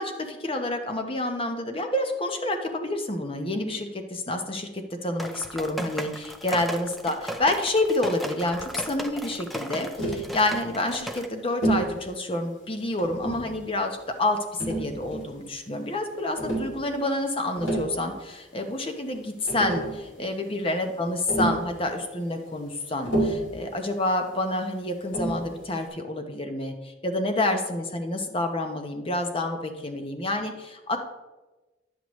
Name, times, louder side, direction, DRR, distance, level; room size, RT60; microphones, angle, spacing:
voice 1, 0.0-31.0, left 1 dB, 30° left, 5 dB, 0.8 m, -28 dB
sound 1, 5.2-11.3, right 1 dB, ahead, 0.4 m, -36 dB
Tap, 10.0-10.3 11.6-11.9 13.0-13.5 14.6-15.4 16.4-16.7 17.4-17.9 19.1-19.2 19.5-20.0 21.3-21.7 23.1-23.5 25.1-25.5, right 1 dB, 90° left, 2.9 m, -28 dB
10.0 x 7.8 x 3.1 m, 1.1 s
head